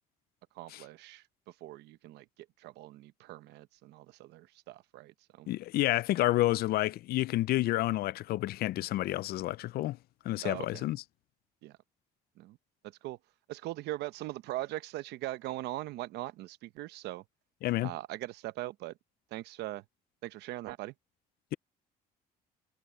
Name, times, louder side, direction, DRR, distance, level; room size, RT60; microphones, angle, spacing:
voice 1, 0.5-5.5 10.4-10.9 11.6-11.8 12.4-12.6 12.8-13.2 13.5-17.2 17.8-19.0 19.3-19.8 20.2-20.9, right 16 dB, 85° right, 0.9 m, -41 dB
voice 2, 5.5-10.0 10.2-11.0 17.6-17.9, left 16 dB, 65° left, 0.4 m, -29 dB
cardioid pair, 110°, 17 cm